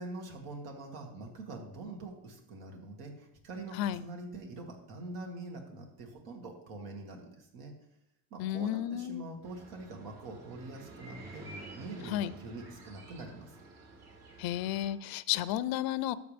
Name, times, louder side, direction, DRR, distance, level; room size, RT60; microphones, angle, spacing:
voice 1, 0.0-7.7 8.3-13.6, right 2 dB, 85° right, 1 dB, 2.3 m, -44 dB
voice 2, 3.7-4.0 8.4-9.2 12.0-12.3 14.4-16.1, left 12 dB, 70° left, 17 dB, 0.6 m, -32 dB
sound 1, 9.4-14.9, right 2 dB, 70° right, 3.4 m, -50 dB
13.0 x 7.3 x 3.5 m, 0.79 s
cardioid pair, 115°, 37 cm